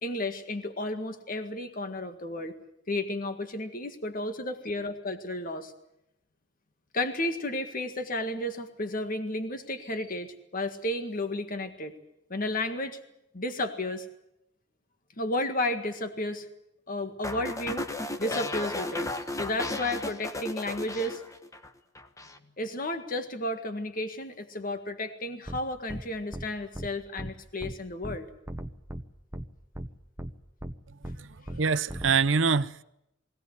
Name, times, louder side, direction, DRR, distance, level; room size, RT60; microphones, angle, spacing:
voice 1, 0.0-2.6 2.9-5.7 6.9-11.9 12.3-13.0 13.3-14.1 15.2-16.5 16.9-17.8 18.2-21.2 22.6-28.3 31.4-31.5, left 1 dB, 45° left, 1.9 m, -32 dB
sound 1, 17.2-21.7 22.0-22.4, left 2 dB, 15° left, 1.2 m, -34 dB
sound 2, 25.5-25.6 25.9-26.0 26.3-26.5 26.7-26.9 27.2-27.3 27.6-27.7 28.0-28.2 28.5-29.0 29.3-29.4 29.7-29.9 30.2-30.3 30.6-30.7 31.0-31.2 31.5-31.6 31.9-32.1, right 1 dB, 15° right, 1.1 m, -37 dB
voice 2, 31.1-32.8, right 5 dB, 80° right, 0.8 m, -25 dB
21.5 x 17.5 x 9.7 m
head